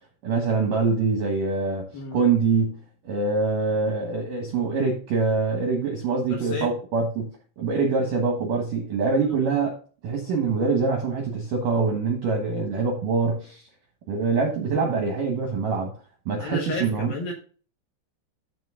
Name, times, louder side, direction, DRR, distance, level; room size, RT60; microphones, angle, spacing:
voice 1, 0.2-2.8 3.0-7.3 7.6-9.8 10.0-13.6 14.1-15.9 16.3-17.1, right 4 dB, 70° right, 2.0 m, -24 dB
voice 2, 6.3-6.7 16.4-17.3, left 3 dB, 65° left, 2.6 m, -32 dB
13.5 x 4.8 x 3.7 m
omnidirectional pair, 5.9 m